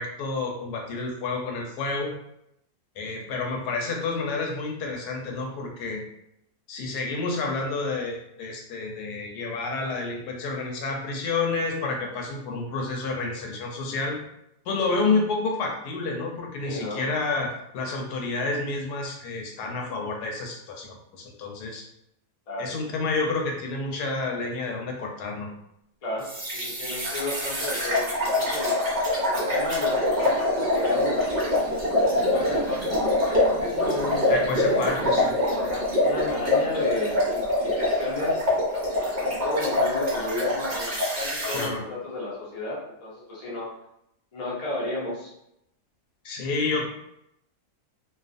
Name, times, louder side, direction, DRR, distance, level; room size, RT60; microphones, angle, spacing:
voice 1, 0.0-2.1 3.0-6.0 6.7-14.2 14.7-21.8 22.6-25.5 34.3-35.4 41.5-41.8 46.2-46.9, left 3 dB, 80° left, 1 dB, 1.1 m, -29 dB
voice 2, 16.6-17.0 22.5-22.7 26.0-28.7 29.3-31.6 32.1-33.0 33.3-34.2 35.5-38.4 39.2-43.7 44.3-45.3, left 2 dB, 45° left, -6 dB, 0.4 m, -33 dB
sound 1, 26.2-41.7, left 1 dB, 55° right, 0.4 m, -25 dB
2.5 x 2.3 x 2.4 m, 0.80 s
omnidirectional pair, 1.7 m